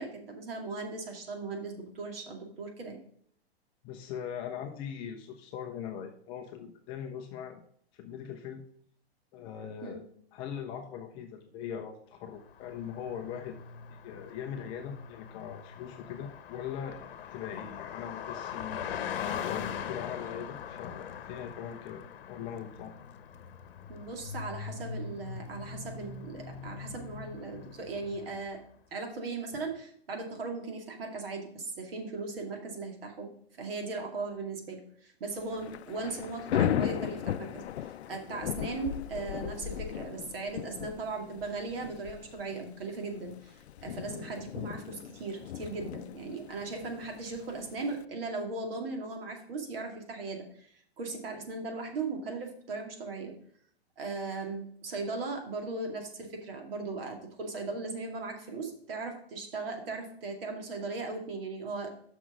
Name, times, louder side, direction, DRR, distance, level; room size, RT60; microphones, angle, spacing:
voice 1, 0.0-3.0 9.8-10.0 23.9-28.6 28.9-33.3 33.6-53.3 54.0-61.9, right 3 dB, 60° right, 3 dB, 2.4 m, -38 dB
voice 2, 3.8-7.6 7.9-8.6 9.3-10.0 10.3-13.6 13.9-22.9, left 8 dB, 15° left, 4 dB, 0.4 m, -41 dB
Car passing by, 12.5-28.5, left 7 dB, 60° left, 0.9 m, -41 dB
Thunder / Rain, 35.4-48.0, left 11 dB, 90° left, 0.5 m, -37 dB
6.2 x 6.0 x 5.9 m, 0.63 s
hypercardioid pair, 145°, 32 cm